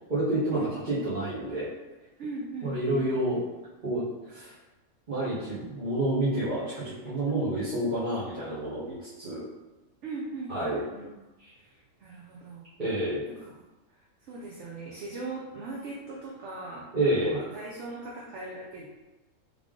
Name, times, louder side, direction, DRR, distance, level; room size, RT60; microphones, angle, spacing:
voice 1, 0.1-1.7 2.6-3.4 3.8-4.5 5.1-9.4 10.5-10.8 11.4-11.5 12.8-13.2 16.9-17.4, right 1 dB, 40° right, -11 dB, 1.2 m, -29 dB
voice 2, 2.2-3.0 10.0-11.1 11.5-12.6 13.4-13.6 13.9-18.9, right 3 dB, 60° right, -3 dB, 0.9 m, -40 dB
3.5 x 3.4 x 3.6 m, 1.1 s
omnidirectional pair, 1.5 m